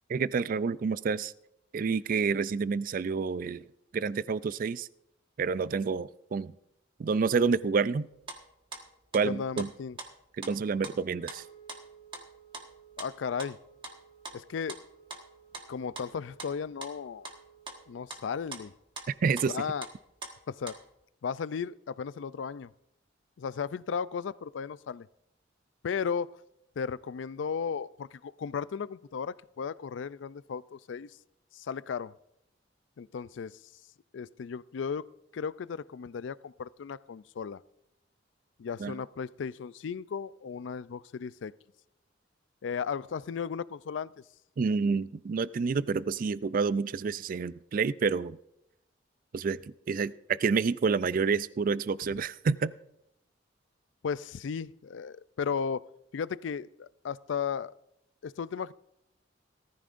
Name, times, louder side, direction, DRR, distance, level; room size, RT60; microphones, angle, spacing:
voice 1, 0.1-1.3 1.7-3.6 3.9-4.9 5.4-6.5 7.0-8.1 9.1-9.7 10.4-11.4 19.1-19.5 38.8-39.0 44.6-48.4 49.3-49.6 49.9-52.7, right 5 dB, 45° right, 0.4 m, -28 dB
sound 1, 8.2-8.8 9.1-9.7 10.0-10.1 10.4-10.5 10.8-11.0 11.3-11.4 11.7-11.8 12.1-12.3 12.5-13.1 13.4-14.8 15.1-15.7 15.9-16.1 16.4-17.0 17.2-17.4 17.7-18.6 19.0-19.1 19.4-19.5 19.8-20.3 20.7-20.8, right 3 dB, 30° right, 1.4 m, -42 dB
voice 2, 9.2-10.0 13.0-13.6 14.3-14.8 15.7-17.3 17.9-18.7 19.5-19.9 20.5-20.8 21.2-22.7 23.4-25.1 25.8-26.4 26.8-31.1 31.5-32.1 33.0-33.6 34.1-37.6 38.6-41.5 42.6-44.1 54.0-55.9 56.1-57.7 58.2-58.7, left 6 dB, 75° left, 0.4 m, -35 dB
Wind instrument woodwind instrument, 10.8-18.0, right 8 dB, 50° left, 2.2 m, -57 dB
18.5 x 14.0 x 2.5 m
head